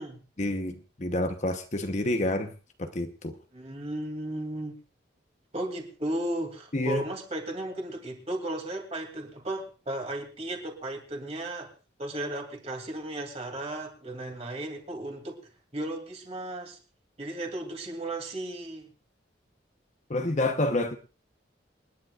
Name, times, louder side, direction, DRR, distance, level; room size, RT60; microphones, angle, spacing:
voice 1, 0.4-2.5 2.8-3.4 6.7-7.0 20.1-21.0, left 1 dB, 40° left, 7 dB, 1.0 m, -28 dB
voice 2, 3.5-4.8 5.5-11.7 12.0-15.4 15.7-16.8 17.2-18.9, right 1 dB, 35° right, 3 dB, 2.7 m, -35 dB
28.0 x 10.5 x 2.4 m, 0.34 s
head